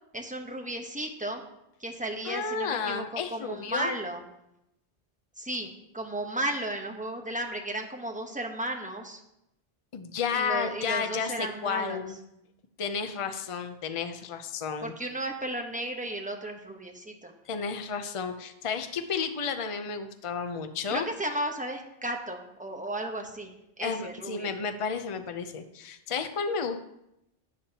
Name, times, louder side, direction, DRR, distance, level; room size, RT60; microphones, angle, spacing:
voice 1, 0.1-1.4 1.8-4.3 5.4-9.2 10.3-12.0 14.8-17.3 20.9-24.5, right 1 dB, 10° right, 3 dB, 1.0 m, -34 dB
voice 2, 2.3-3.9 9.9-12.2 12.8-14.9 17.5-21.1 23.8-26.8, left 6 dB, 35° left, 8 dB, 0.6 m, -32 dB
12.5 x 8.6 x 2.9 m, 0.84 s
omnidirectional pair, 1.0 m